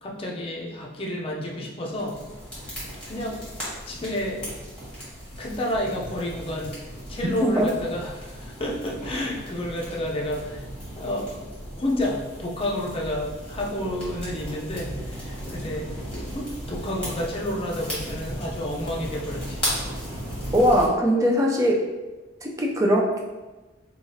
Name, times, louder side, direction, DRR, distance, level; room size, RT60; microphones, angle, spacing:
voice 1, 0.0-2.2 3.0-3.4 3.9-4.4 5.4-6.8 7.1-10.6 11.0-11.4 11.7-19.6, left 1 dB, 30° left, -2 dB, 0.5 m, -30 dB
sound 1, 1.9-20.9, equal, 5° left, 1.3 m, -36 dB
voice 2, 20.5-21.9 22.4-23.2, equal, 15° right, -1 dB, 0.4 m, -20 dB
4.8 x 2.3 x 2.7 m, 1.2 s
head